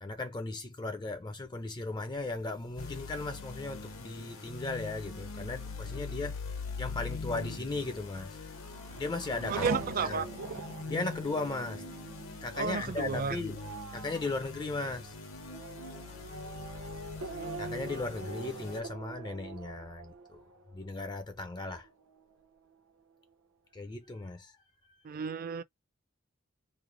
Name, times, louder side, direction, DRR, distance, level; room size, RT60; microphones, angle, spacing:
voice 1, 0.0-6.4 6.8-8.5 8.9-9.7 10.0-10.2 10.9-11.8 12.4-13.6 13.9-15.2 16.5-16.8 17.6-20.4 20.7-21.9 23.7-24.6 24.8-25.0, left 3 dB, 20° left, 0.4 m, -37 dB
sound 1, 2.8-18.8, left 4 dB, 75° left, 0.9 m, -43 dB
Race car auto racing / Accelerating revving vroom, 8.3-21.4 21.8-22.5, right 3 dB, 90° right, 0.8 m, -43 dB
voice 2, 9.5-10.3 12.6-13.4 25.0-25.6, right 5 dB, 45° right, 0.4 m, -32 dB
3.1 x 2.1 x 3.7 m
head